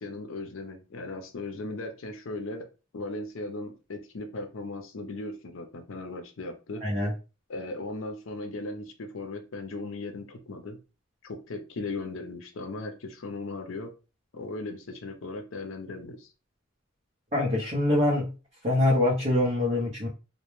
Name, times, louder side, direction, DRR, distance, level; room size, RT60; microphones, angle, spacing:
voice 1, 0.0-2.6 2.9-6.8 7.5-10.8 11.2-13.9 14.3-16.3, left 2 dB, 80° left, 5 dB, 0.6 m, -37 dB
voice 2, 6.8-7.1 17.3-18.3 18.6-20.1, left 1 dB, 35° right, -6 dB, 0.6 m, -24 dB
2.1 x 2.1 x 3.0 m, 0.32 s
head